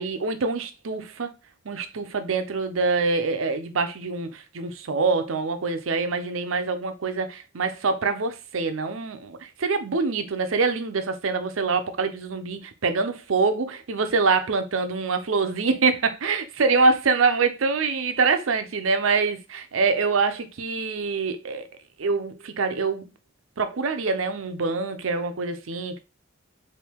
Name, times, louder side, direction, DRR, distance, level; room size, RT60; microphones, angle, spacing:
voice 1, 0.0-1.3 1.7-21.7 22.0-23.1 23.6-26.0, right 4 dB, 70° right, 0.6 m, -25 dB
4.4 x 2.7 x 3.5 m
head